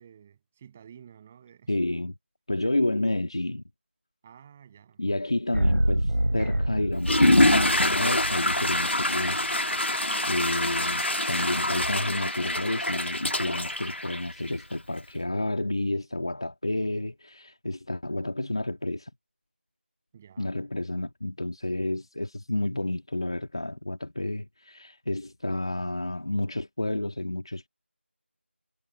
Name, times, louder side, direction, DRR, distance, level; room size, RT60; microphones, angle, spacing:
voice 1, 0.0-1.7 2.5-2.7 4.2-5.2 20.1-20.6, right 8 dB, 5° right, 7.5 m, -52 dB
voice 2, 1.7-2.2 2.5-3.6 5.0-9.5 10.3-19.1 20.4-27.7, left 1 dB, 25° left, 1.7 m, -30 dB
sound 1, 5.5-9.5, right 1 dB, 85° right, 6.6 m, -28 dB
Water / Toilet flush, 7.0-14.7, left 1 dB, 65° left, 1.8 m, -25 dB
figure-of-eight pair, 180°, 7 cm